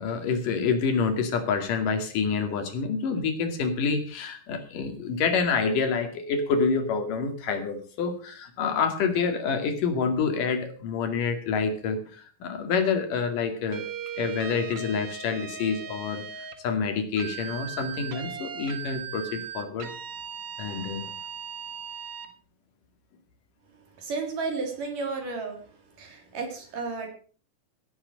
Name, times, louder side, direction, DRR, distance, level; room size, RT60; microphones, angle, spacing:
voice 1, 0.0-13.8 14.2-19.9 20.6-21.1, left 5 dB, 75° left, 7 dB, 3.8 m, -27 dB
sound 1, 13.7-16.6 17.2-22.3, right 7 dB, 55° right, 2.1 m, -38 dB
voice 2, 24.0-25.6 26.0-27.1, right 4 dB, 75° right, 4 dB, 5.0 m, -32 dB
16.5 x 8.1 x 6.5 m, 0.42 s
omnidirectional pair, 3.8 m